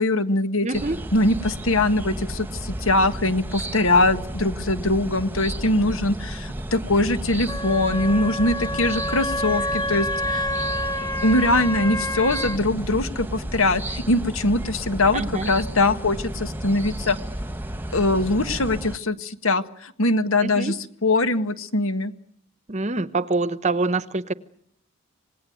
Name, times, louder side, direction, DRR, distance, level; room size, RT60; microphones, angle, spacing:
voice 1, 0.0-0.7 1.1-10.5 11.2-17.2 17.9-20.8 21.0-22.1, left 2 dB, 70° left, 11 dB, 1.6 m, -22 dB
voice 2, 0.6-1.0 15.1-15.5 20.4-20.8 22.7-24.3, right 3 dB, 30° right, 15 dB, 1.0 m, -25 dB
sound 1, 0.7-19.0, right 1 dB, 10° right, 1.4 m, -32 dB
Wind instrument woodwind instrument, 7.5-12.6, left 1 dB, 20° left, 1.1 m, -28 dB
26.5 x 19.5 x 9.5 m, 0.69 s
head